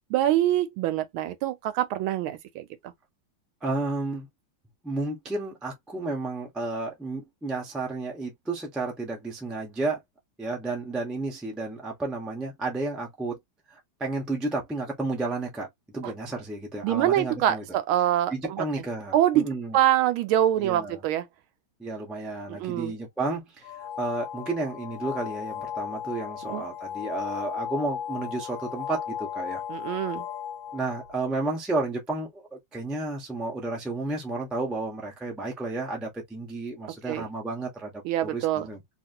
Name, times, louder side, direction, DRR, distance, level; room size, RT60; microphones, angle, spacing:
voice 1, 0.1-2.7 16.8-18.7 19.1-19.5 19.7-21.3 22.5-22.9 26.4-26.6 29.7-30.2 37.1-37.3 38.0-38.7, right 12 dB, 80° right, 1.4 m, -25 dB
voice 2, 3.6-4.3 4.8-10.0 10.4-13.4 13.7-17.6 18.3-19.8 20.6-21.0 21.8-29.6 30.7-38.8, right 2 dB, ahead, 0.4 m, -32 dB
sound 1, 23.6-31.2, left 8 dB, 70° left, 1.2 m, -35 dB
3.0 x 2.8 x 2.7 m
omnidirectional pair, 2.4 m